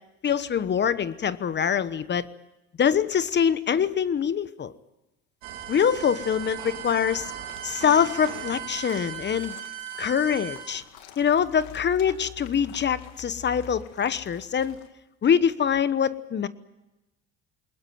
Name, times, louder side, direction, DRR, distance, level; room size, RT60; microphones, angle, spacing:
voice 1, 0.2-2.3 2.8-4.7 5.7-7.3 7.6-9.5 10.0-10.8 11.2-14.8 15.2-16.5, left 8 dB, 35° left, 15 dB, 1.1 m, -24 dB
sound 1, 5.4-10.8, right 10 dB, 85° right, 3.6 m, -37 dB
sound 2, 7.4-14.9, left 10 dB, 85° left, 2.3 m, -52 dB
21.5 x 20.0 x 9.4 m, 1.0 s
supercardioid pair, 90°, 31 cm